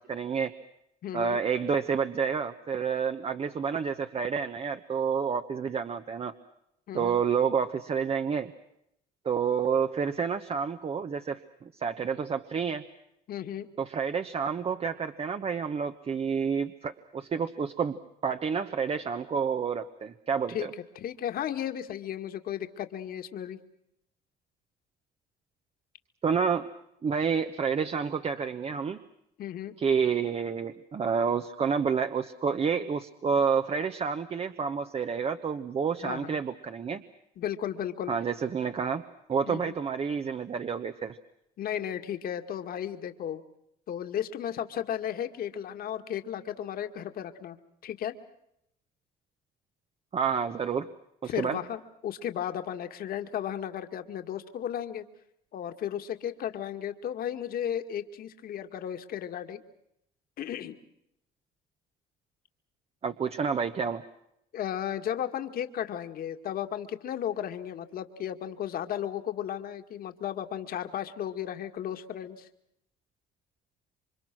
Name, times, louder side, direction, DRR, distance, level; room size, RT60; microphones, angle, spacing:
voice 1, 0.1-0.5 1.1-6.3 6.9-8.5 9.2-11.4 11.8-12.8 13.8-20.7 26.2-26.7 27.0-29.0 29.8-37.0 38.1-39.0 39.3-41.2 50.1-50.9 51.2-51.6 63.0-64.0, right 6 dB, 35° right, 8 dB, 1.2 m, -29 dB
voice 2, 1.0-1.4 6.9-7.2 13.3-13.7 20.5-20.7 21.0-23.6 29.4-29.8 36.0-36.3 37.4-38.1 39.5-39.8 41.6-43.4 43.9-47.6 47.8-48.2 51.3-55.1 55.5-59.6 60.4-60.8 64.5-72.5, left 10 dB, 60° left, 7 dB, 2.1 m, -34 dB
28.5 x 25.0 x 6.2 m, 0.78 s
cardioid pair, 110°, 17 cm